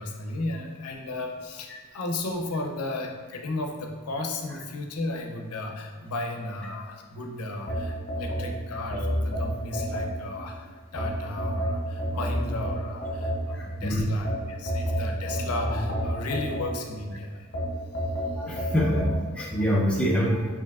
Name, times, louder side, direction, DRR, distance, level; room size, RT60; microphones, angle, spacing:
voice 1, 0.0-17.5, left 2 dB, 90° left, 3 dB, 0.5 m, -34 dB
sound 1, 7.7-10.5 11.0-13.7 14.2-17.0 17.5-19.2, equal, 45° left, 0.6 m, -29 dB
voice 2, 13.5-14.0 18.4-20.5, equal, 5° left, -3 dB, 0.3 m, -26 dB
4.6 x 2.7 x 2.3 m, 1.5 s
head